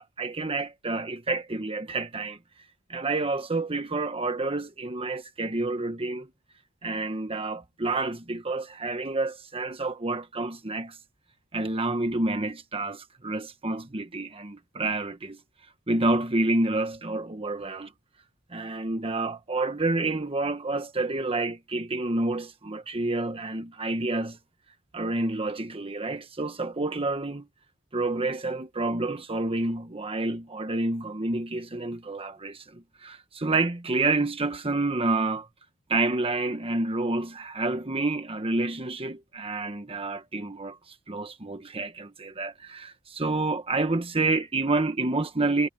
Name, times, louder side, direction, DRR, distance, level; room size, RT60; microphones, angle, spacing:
voice 1, 0.0-2.4 2.9-6.3 6.8-11.0 11.5-15.4 15.9-17.9 18.5-24.4 24.9-27.5 27.9-35.5 35.9-45.7, right 2 dB, 25° right, 1.2 m, -29 dB
head